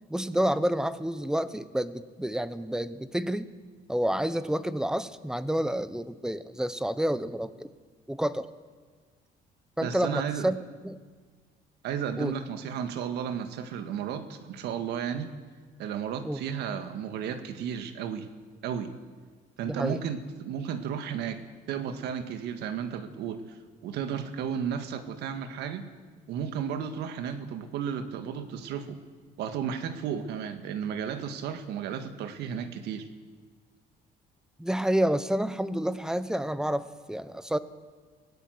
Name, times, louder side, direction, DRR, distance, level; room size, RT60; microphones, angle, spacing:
voice 1, 0.1-3.5 3.9-7.7 8.1-8.5 9.8-10.6 10.8-11.0 12.2-12.3 16.2-16.4 19.6-20.0 34.6-37.6, right 1 dB, 5° right, 14 dB, 1.0 m, -29 dB
voice 2, 9.8-10.5 11.8-15.3 15.8-18.3 18.6-19.0 19.6-21.4 21.7-23.4 23.8-25.9 26.3-29.0 29.4-33.1, right 8 dB, 80° right, 9 dB, 1.8 m, -33 dB
21.5 x 18.0 x 8.0 m, 1.5 s
cardioid pair, 110°, 17 cm